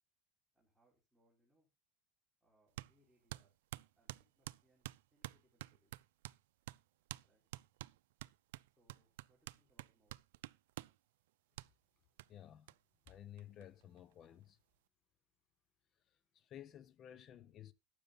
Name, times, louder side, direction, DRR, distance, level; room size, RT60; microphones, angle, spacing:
voice 1, 0.5-1.7 2.4-3.5 4.0-6.0 7.2-7.4 8.8-10.2, right 1 dB, 5° right, 3.7 m, -77 dB
sound 1, 2.8-2.9 3.3-6.4 6.7-6.8 7.1-7.3 7.5-11.0 11.6-11.7 12.2-12.3 12.7-12.8 13.1-13.2 13.4-14.1, right 17 dB, 85° right, 0.5 m, -49 dB
voice 2, 12.3-12.7 13.1-14.6 16.3-17.7, left 11 dB, 35° left, 0.8 m, -54 dB
12.0 x 8.3 x 4.0 m
supercardioid pair, 150°, 0 cm